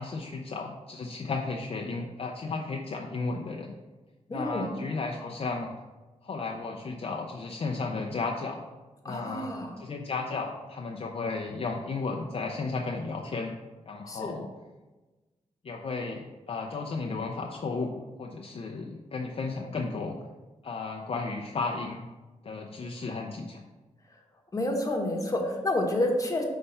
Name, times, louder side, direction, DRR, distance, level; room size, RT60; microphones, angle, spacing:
voice 1, 0.0-3.7 4.3-5.7 6.2-8.6 9.1-9.5 9.8-13.5 13.9-14.5 15.6-17.9 18.2-20.2 20.6-22.1 22.4-23.6, left 4 dB, 50° left, 0 dB, 0.5 m, -34 dB
voice 2, 4.3-4.6 9.0-9.8 14.1-14.3 24.5-26.4, left 1 dB, 30° left, 1 dB, 1.0 m, -29 dB
5.4 x 3.4 x 5.4 m, 1.2 s
wide cardioid pair, 100°, 12 cm